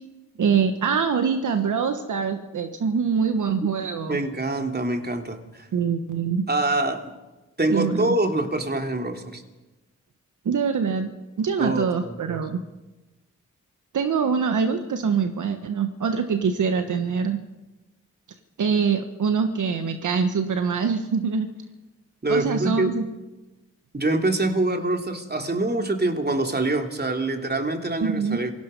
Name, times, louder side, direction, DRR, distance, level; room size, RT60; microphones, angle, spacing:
voice 1, 0.4-4.2 5.7-6.5 7.7-8.1 10.4-11.1 11.4-12.6 13.9-17.4 18.6-21.5 22.3-23.0 28.0-28.4, right 6 dB, 75° right, 7 dB, 1.4 m, -24 dB
voice 2, 4.1-5.7 6.5-7.1 7.6-9.4 11.6-12.4 22.2-22.9 23.9-28.5, right 2 dB, 30° right, 4 dB, 3.3 m, -25 dB
26.5 x 18.0 x 5.4 m, 1.1 s
supercardioid pair, 40°, 31 cm